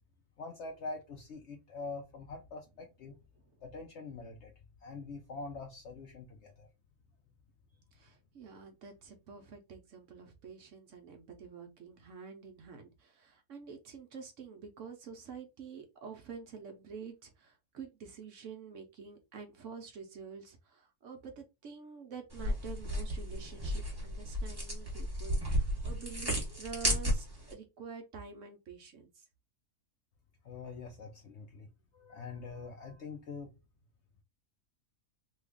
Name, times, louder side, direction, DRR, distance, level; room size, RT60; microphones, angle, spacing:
voice 1, 0.4-3.2 3.6-4.5 4.8-6.7 30.4-31.7 31.9-33.5, left 3 dB, 65° left, 0.7 m, -44 dB
voice 2, 7.9-29.2, right 6 dB, 60° right, 0.9 m, -48 dB
sound 1, 22.3-27.5, equal, 15° right, 1.1 m, -33 dB
3.1 x 2.4 x 3.4 m
omnidirectional pair, 1.7 m